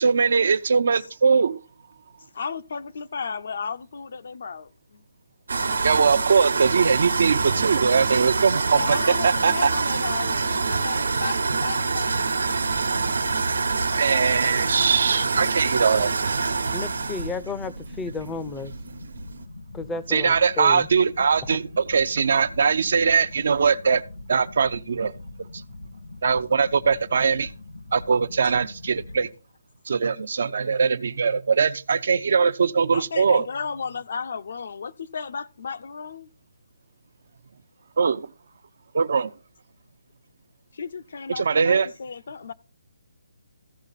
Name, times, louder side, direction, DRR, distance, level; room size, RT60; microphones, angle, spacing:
voice 1, 0.0-1.6 5.8-9.0 9.2-9.7 14.0-16.1 20.1-24.0 24.3-25.1 26.2-27.5 27.9-29.3 29.9-33.5 38.0-38.3 38.9-39.3 41.4-41.9, right 5 dB, 60° right, 0.6 m, -21 dB
voice 2, 2.3-5.0 8.7-12.2 32.9-36.3 40.7-42.5, left 5 dB, 60° left, 0.7 m, -34 dB
sound 1, 5.5-19.4, right 4 dB, 85° right, 1.2 m, -26 dB
sound 2, 11.9-29.3, left 2 dB, 85° left, 2.4 m, -42 dB
voice 3, 16.7-18.7 19.7-20.9 21.5-21.6, left 4 dB, 10° left, 0.6 m, -33 dB
15.0 x 5.1 x 4.1 m
hypercardioid pair, 160°, 0 cm